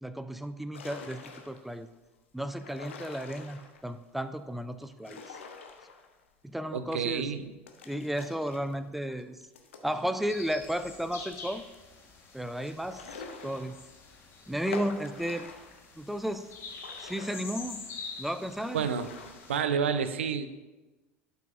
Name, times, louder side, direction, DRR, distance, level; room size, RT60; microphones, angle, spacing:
voice 1, 0.0-1.9 2.3-5.4 6.4-7.3 7.9-9.4 9.8-11.6 12.3-13.8 14.5-15.5 16.0-16.5 17.0-17.9 18.2-18.8, equal, ahead, 12 dB, 0.4 m, -34 dB
sound 1, 0.7-1.8 2.5-3.9 4.8-6.4 6.7-6.8 7.7-10.9 11.3-11.4 11.7-11.8 12.6-14.1 14.6-15.9 16.4-18.0 18.5-19.6, left 4 dB, 75° left, 0.8 m, -46 dB
voice 2, 6.7-7.5 18.7-19.1 19.5-20.5, right 7 dB, 75° right, 11 dB, 0.5 m, -29 dB
sound 2, 10.3-19.6, left 4 dB, 40° left, 1.4 m, -46 dB
11.5 x 5.7 x 2.5 m, 1.2 s
figure-of-eight pair, 70°, 7 cm